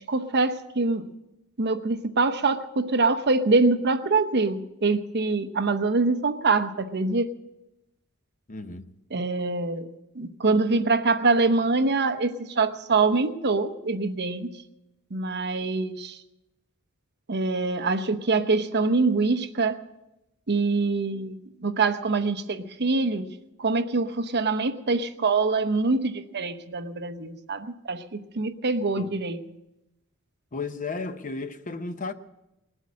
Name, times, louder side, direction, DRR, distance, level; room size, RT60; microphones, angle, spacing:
voice 1, 0.1-1.0 1.6-7.3 9.1-9.9 10.1-14.5 15.1-16.2 17.3-19.8 20.5-23.3 23.6-29.4, right 3 dB, 50° right, 0.9 m, -24 dB
voice 2, 8.5-8.9 28.9-29.1 30.5-32.1, left 3 dB, 35° left, 0.7 m, -34 dB
19.5 x 8.1 x 8.5 m
head